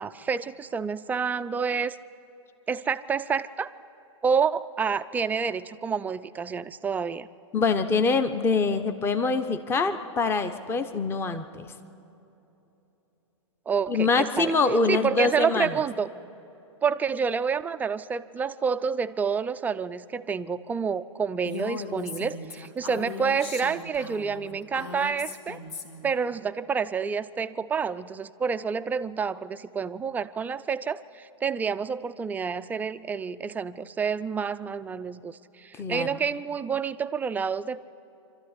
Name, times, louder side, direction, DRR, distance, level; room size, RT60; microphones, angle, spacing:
voice 1, 0.0-2.0 2.7-3.7 4.2-7.3 13.7-14.5 14.9-16.1 16.8-25.6 26.0-37.8, right 6 dB, 10° right, 12 dB, 0.4 m, -28 dB
voice 2, 7.5-11.7 13.9-15.7 35.8-36.1, left 4 dB, 15° left, 9 dB, 0.9 m, -24 dB
Female speech woman speaking, 21.4-26.1, left 4 dB, 60° left, 2.8 m, -38 dB
25.0 x 13.0 x 9.8 m, 3.0 s
hypercardioid pair, 135°, 16 cm